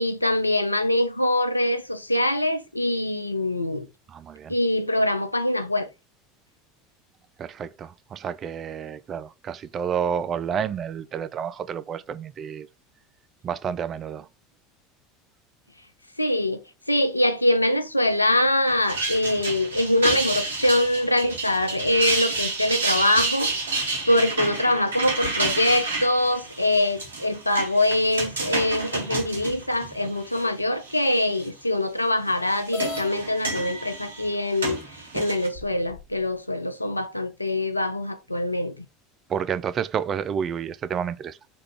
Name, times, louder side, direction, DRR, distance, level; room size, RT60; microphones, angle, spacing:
voice 1, 0.0-3.9 4.5-5.9 16.2-16.6 16.9-23.5 24.1-34.8 35.1-38.8, left 1 dB, 90° left, 0.3 m, -23 dB
voice 2, 4.1-4.5 7.4-12.7 13.4-14.3 39.3-41.5, right 7 dB, 35° right, 0.3 m, -30 dB
sound 1, 18.7-30.4 30.9-31.4 32.3-35.5, right 3 dB, 75° right, 0.9 m, -30 dB
sound 2, 32.7-33.1 34.1-34.2 34.8-34.9 35.5-36.2, left 5 dB, 50° left, 0.8 m, -36 dB
2.9 x 2.4 x 3.5 m
figure-of-eight pair, 75°, 0 cm